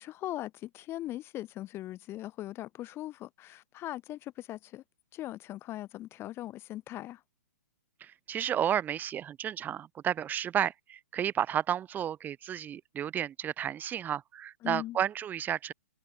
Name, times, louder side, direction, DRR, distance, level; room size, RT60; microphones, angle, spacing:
voice 1, 0.0-4.8 5.1-7.2 14.6-15.0, left 14 dB, 25° left, 4.7 m, -40 dB
voice 2, 8.0-15.7, right 10 dB, 20° right, 1.5 m, -32 dB
figure-of-eight pair, 120°, 9 cm